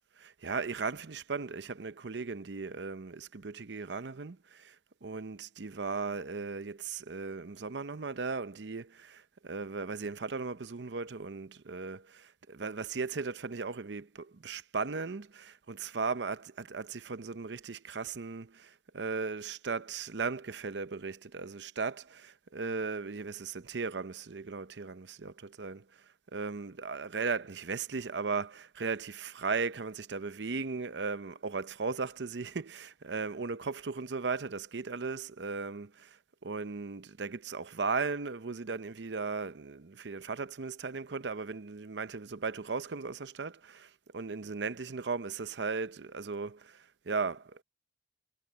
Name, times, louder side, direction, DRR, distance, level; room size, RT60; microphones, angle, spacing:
voice 1, 0.2-4.8 5.0-25.8 26.3-47.6, right 4 dB, 70° right, 0.7 m, -37 dB
head